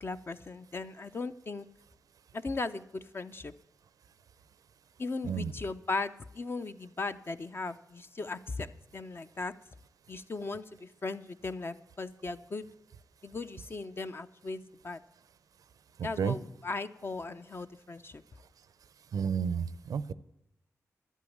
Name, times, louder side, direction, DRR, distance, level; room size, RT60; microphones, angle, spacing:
voice 1, 0.0-1.7 2.3-3.5 5.0-9.5 10.1-12.7 13.2-15.0 16.0-18.2, left 3 dB, 40° left, 10 dB, 0.7 m, -37 dB
voice 2, 19.1-20.1, right 7 dB, 85° right, 17 dB, 0.6 m, -31 dB
11.5 x 8.3 x 8.6 m, 0.86 s
wide cardioid pair, 90°, 6 cm